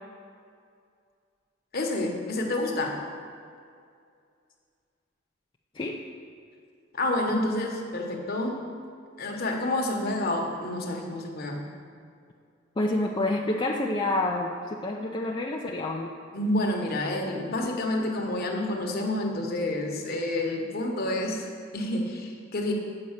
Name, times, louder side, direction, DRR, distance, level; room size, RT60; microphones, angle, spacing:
voice 1, 1.7-3.0 6.9-8.6 9.2-11.6 16.3-22.7, left 1 dB, 50° left, 1 dB, 1.2 m, -29 dB
voice 2, 12.8-16.1, left 2 dB, 25° left, -1 dB, 0.5 m, -28 dB
7.7 x 5.3 x 7.2 m, 2.3 s
head